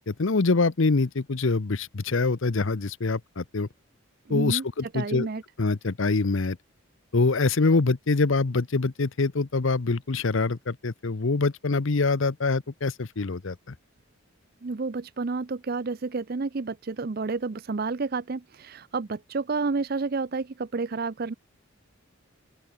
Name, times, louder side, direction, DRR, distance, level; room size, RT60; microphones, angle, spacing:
voice 1, 0.1-3.7 4.3-5.3 5.6-6.6 7.1-13.6, left 3 dB, 65° left, 0.8 m, -25 dB
voice 2, 4.3-4.6 4.9-5.4 14.6-21.3, right 4 dB, 45° right, 0.5 m, -30 dB
open air
head